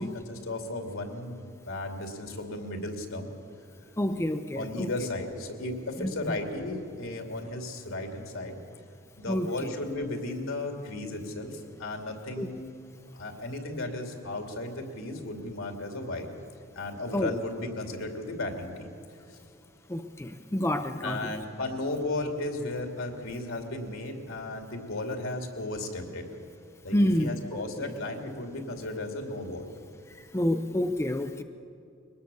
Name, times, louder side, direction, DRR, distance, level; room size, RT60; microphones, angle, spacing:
voice 1, 0.0-3.3 4.6-8.6 9.2-12.7 13.1-16.3 16.7-18.9 21.0-26.3 26.8-29.7, left 2 dB, 70° left, 4 dB, 2.7 m, -35 dB
voice 2, 4.0-4.9 6.0-6.1 9.3-9.7 12.4-12.5 17.1-17.3 19.9-21.3 26.9-27.9 30.3-31.4, left 1 dB, 15° left, 7 dB, 0.6 m, -28 dB
22.5 x 19.0 x 7.0 m, 2.6 s
head